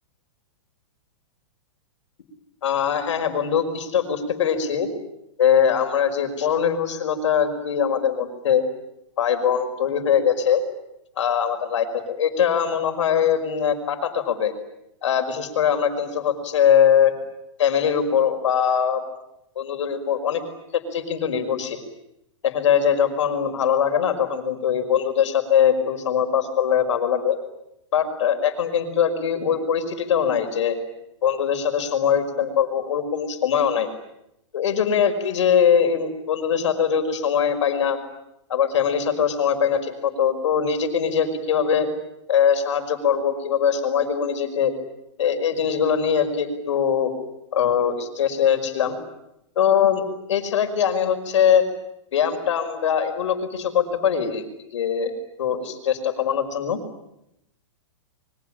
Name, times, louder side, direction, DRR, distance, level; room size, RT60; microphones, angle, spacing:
voice 1, 2.6-4.9 5.4-8.6 9.2-10.6 11.2-14.5 15.0-17.1 17.6-19.0 19.6-20.4 20.7-21.8 22.4-27.4 27.9-30.8 31.2-33.9 34.5-38.0 38.5-41.9 42.3-44.7 45.2-47.1 47.5-49.0 49.6-51.6 52.1-56.8, left 8 dB, 70° left, 8 dB, 5.5 m, -22 dB
28.0 x 24.0 x 8.9 m, 0.83 s
hypercardioid pair, 160°, 16 cm